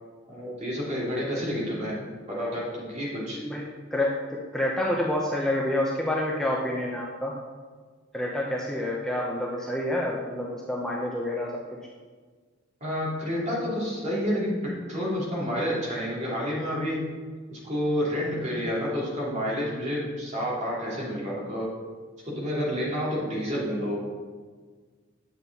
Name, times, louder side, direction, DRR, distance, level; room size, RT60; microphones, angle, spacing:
voice 1, 0.3-2.0 2.3-3.4 12.8-17.0 17.5-21.7 22.2-24.0, equal, 35° right, -6 dB, 2.8 m, -29 dB
voice 2, 3.9-7.3 8.1-11.6, left 1 dB, 5° left, -3 dB, 0.7 m, -28 dB
9.1 x 7.3 x 4.1 m, 1.5 s
head